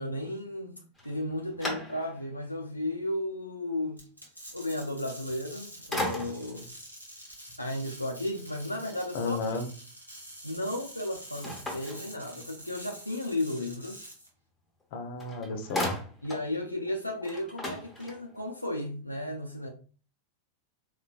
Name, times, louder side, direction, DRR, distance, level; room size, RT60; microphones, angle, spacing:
voice 1, 0.0-4.0 4.5-6.7 7.6-9.4 10.4-14.0 16.2-19.7, left 1 dB, 85° left, 0.3 m, -34 dB
sound 1, 1.0-2.4 2.9-3.0 5.3-5.6 5.9-6.7 11.4-12.7 14.8-14.9 15.2-16.5 16.9-17.0 17.2-18.5, left 1 dB, 5° left, 0.9 m, -36 dB
sound 2, 4.0-14.3, equal, 85° right, 0.9 m, -47 dB
voice 2, 9.1-9.7 14.9-15.9, left 3 dB, 50° left, 0.6 m, -33 dB
3.9 x 2.2 x 2.3 m
figure-of-eight pair, 90°, 0 cm